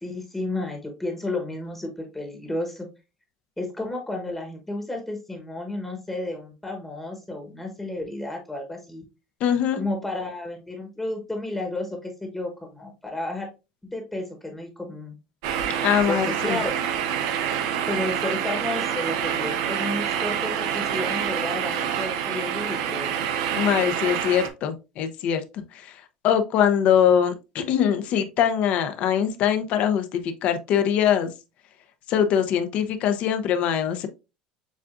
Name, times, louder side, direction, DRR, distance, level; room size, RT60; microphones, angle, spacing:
voice 1, 0.0-2.9 3.6-9.0 9.7-13.5 13.9-15.1 16.1-16.7 17.8-23.1, left 2 dB, 5° left, 1.1 m, -32 dB
voice 2, 9.4-9.8 15.8-16.6 23.5-31.3 32.1-34.1, left 9 dB, 50° left, 0.7 m, -23 dB
sound 1, 15.4-24.5, right 9 dB, 80° right, 0.7 m, -27 dB
7.2 x 2.5 x 2.5 m
supercardioid pair, 135°, 3 cm